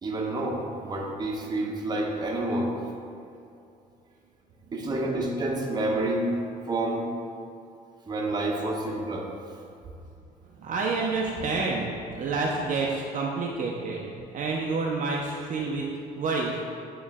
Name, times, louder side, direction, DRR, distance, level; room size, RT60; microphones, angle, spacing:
voice 1, 0.0-2.7 4.7-6.3 6.7-7.0 8.1-9.3, right 2 dB, 25° right, -1 dB, 0.9 m, -28 dB
voice 2, 10.6-15.8 16.2-16.5, right 3 dB, 50° right, -2 dB, 0.6 m, -28 dB
8.6 x 3.1 x 3.5 m, 2.6 s
cardioid pair, 110°, 17 cm